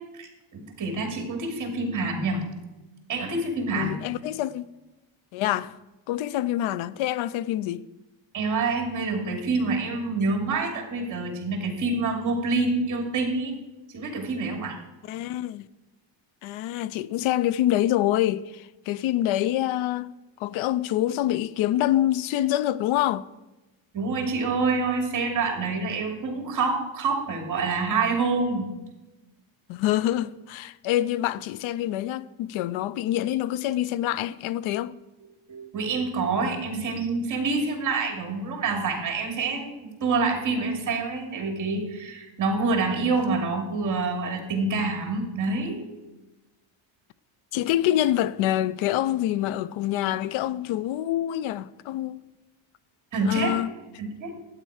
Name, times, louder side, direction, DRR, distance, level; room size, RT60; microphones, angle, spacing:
voice 1, 0.1-2.4 3.1-3.9 8.3-13.5 13.9-14.8 23.9-28.7 35.5-45.8 53.1-53.6 54.0-54.3, right 3 dB, 40° right, 2.5 m, -27 dB
voice 2, 3.7-4.7 5.3-5.8 6.1-7.8 15.1-15.7 16.4-20.1 20.4-23.3 29.7-34.9 47.5-52.2 53.3-53.7, left 13 dB, 85° left, 0.6 m, -26 dB
12.0 x 8.9 x 4.9 m
cardioid pair, 165°, 47 cm